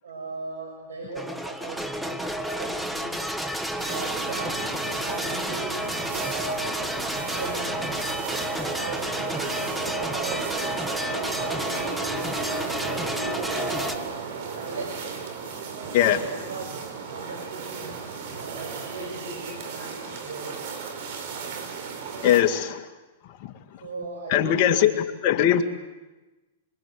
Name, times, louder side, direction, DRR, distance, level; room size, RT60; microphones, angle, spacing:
voice 1, 0.0-3.4 3.9-5.9 6.2-6.9 7.2-7.9 8.7-10.6 11.0-14.1 14.4-15.2 16.1-18.0 18.4-20.6 23.8-24.7, right 3 dB, 90° right, 0 dB, 6.7 m, -38 dB
sound 1, 1.2-14.0, equal, ahead, 1.3 m, -31 dB
sound 2, 3.8-22.4, right 5 dB, 60° right, 4.8 m, -34 dB
voice 2, 15.9-16.2 22.2-22.8 23.4-23.5 24.3-24.9 25.2-25.6, left 10 dB, 45° left, 5 dB, 2.3 m, -20 dB
24.5 x 24.0 x 8.1 m, 1.1 s
hypercardioid pair, 135°, 0 cm